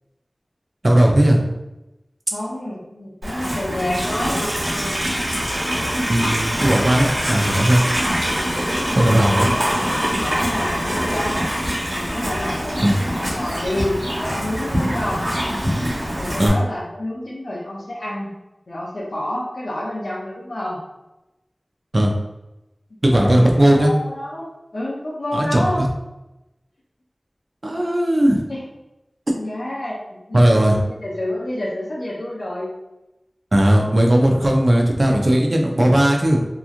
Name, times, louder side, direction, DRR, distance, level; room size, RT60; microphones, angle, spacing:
voice 1, 0.8-1.4 6.1-7.8 9.0-9.5 12.8-13.0 16.4-16.5 21.9-22.1 23.0-23.9 25.3-25.9 27.6-28.4 30.3-30.8 33.5-36.4, right 1 dB, 50° right, 1 dB, 0.5 m, -16 dB
voice 2, 2.3-4.5 9.1-9.7 10.2-11.4 11.9-15.3 16.1-18.3 18.7-20.8 23.1-25.8 28.5-28.6 29.3-32.7 35.4-35.6, left 1 dB, 85° left, -6 dB, 0.5 m, -28 dB
Livestock farm animals working animals, 3.2-16.5, equal, 90° right, 1.3 m, -24 dB
2.9 x 2.4 x 2.4 m, 0.97 s
wide cardioid pair, 55°, 0 cm